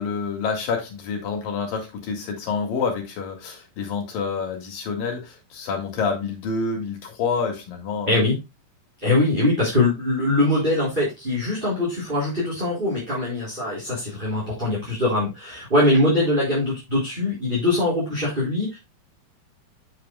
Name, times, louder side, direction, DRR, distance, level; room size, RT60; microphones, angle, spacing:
voice 1, 0.0-8.2, left 5 dB, 75° left, 3.9 m, -28 dB
voice 2, 9.0-18.8, left 2 dB, 15° right, 4.0 m, -22 dB
9.0 x 7.9 x 2.2 m
omnidirectional pair, 4.1 m